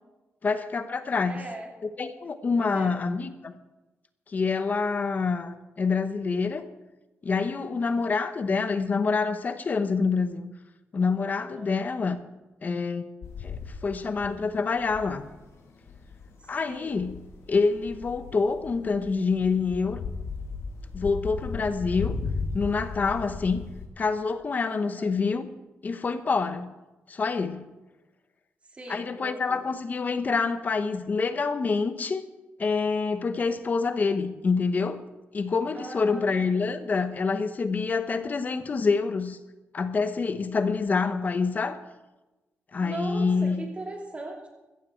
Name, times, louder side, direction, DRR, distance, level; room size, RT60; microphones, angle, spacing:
voice 1, 0.4-1.4 2.0-3.5 4.3-6.7 7.2-10.5 10.9-12.2 12.6-13.1 13.4-15.3 16.5-17.2 17.5-20.0 20.9-22.2 22.5-23.7 24.0-25.5 25.8-26.7 27.1-27.7 28.9-32.2 32.6-35.0 35.3-39.4 39.7-41.8 42.7-43.7, left 4 dB, 35° left, 11 dB, 1.0 m, -27 dB
voice 2, 1.3-1.7 2.6-3.0 11.6-11.8 16.4-17.0 24.8-25.1 28.7-29.6 35.7-36.9 42.8-44.5, right 2 dB, 25° right, 0 dB, 3.0 m, -40 dB
sound 1, 13.2-23.9, left 4 dB, 75° left, 2.4 m, -36 dB
15.5 x 14.0 x 4.6 m, 1.1 s
wide cardioid pair, 145°, 5 cm